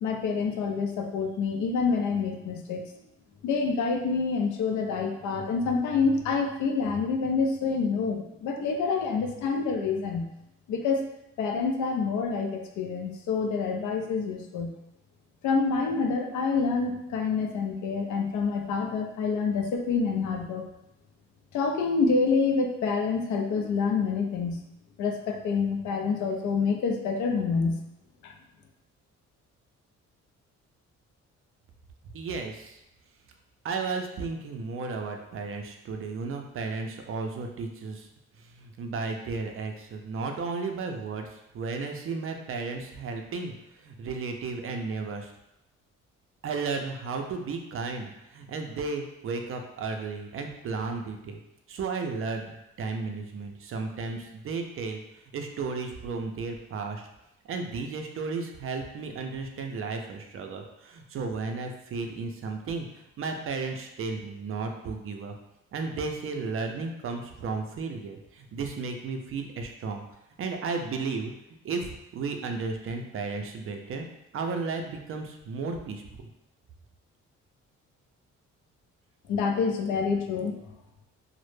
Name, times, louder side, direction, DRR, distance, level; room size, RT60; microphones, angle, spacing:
voice 1, 0.0-2.8 3.4-10.3 10.7-11.0 11.4-14.7 15.4-20.6 21.5-24.6 25.0-27.8 28.2-28.3 79.3-80.5, left 4 dB, 75° left, 3 dB, 0.5 m, -27 dB
voice 2, 32.1-32.8 33.6-38.1 38.5-45.3 46.4-51.4 51.7-52.5 52.8-55.0 55.3-57.1 57.5-62.9 63.2-65.3 65.7-70.0 70.4-71.3 71.6-74.1 74.3-76.3, right 4 dB, 45° right, 4 dB, 0.4 m, -34 dB
2.0 x 2.0 x 3.1 m, 0.85 s
cardioid pair, 90°, 30 cm